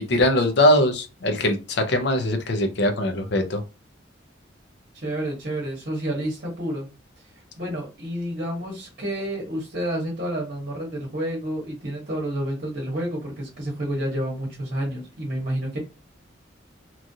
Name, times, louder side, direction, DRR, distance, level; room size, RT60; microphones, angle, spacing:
voice 1, 0.1-3.6, left 1 dB, 65° left, 7 dB, 0.6 m, -21 dB
voice 2, 4.9-6.9 7.6-15.8, right 1 dB, 55° right, -2 dB, 1.0 m, -29 dB
3.1 x 2.4 x 2.6 m, 0.29 s
head